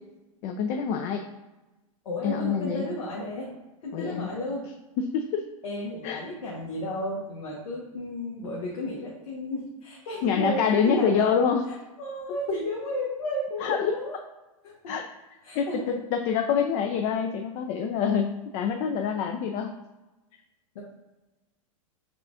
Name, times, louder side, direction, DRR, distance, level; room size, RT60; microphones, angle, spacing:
voice 1, 0.4-1.3 2.2-2.9 3.9-4.3 5.0-5.5 6.0-6.2 10.2-11.7 13.6-13.9 14.9-15.0 15.6-19.7, left 7 dB, 40° left, 5 dB, 0.4 m, -26 dB
voice 2, 2.0-3.5 3.8-4.6 5.6-11.3 11.7-14.2 14.6-14.9 15.4-16.0 20.7-20.8, left 1 dB, 75° left, -4 dB, 1.1 m, -33 dB
5.6 x 2.4 x 3.6 m, 1.1 s
hypercardioid pair, 115°, 18 cm